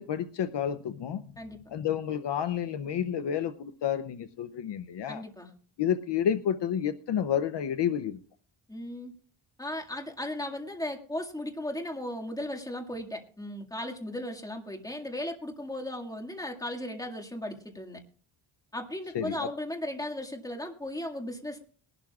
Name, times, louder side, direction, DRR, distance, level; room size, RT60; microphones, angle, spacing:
voice 1, 0.0-1.2 1.7-5.2 5.8-8.2 19.1-19.5, left 9 dB, 60° left, 10 dB, 0.7 m, -30 dB
voice 2, 5.1-5.5 8.7-9.2 9.6-18.0 18.7-21.6, left 1 dB, 5° left, 2 dB, 2.0 m, -36 dB
21.0 x 12.0 x 2.4 m, 0.43 s
wide cardioid pair, 125°, 48 cm